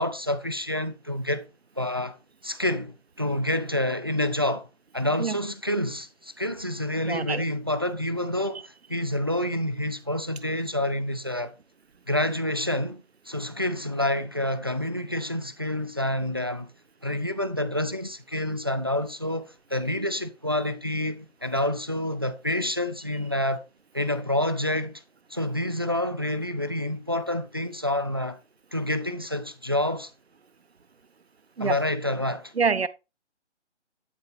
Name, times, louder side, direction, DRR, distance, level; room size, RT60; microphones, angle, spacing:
voice 1, 0.0-1.5 1.8-2.2 2.4-4.7 4.9-11.5 12.1-16.7 17.0-23.6 23.9-25.0 25.3-28.4 28.7-30.1 31.6-32.5, left 1 dB, 20° right, 0.4 m, -28 dB
voice 2, 7.1-7.4 31.6-31.8 32.6-32.9, right 5 dB, 60° right, 1.0 m, -25 dB
12.0 x 4.0 x 5.0 m
figure-of-eight pair, 145°, 35 cm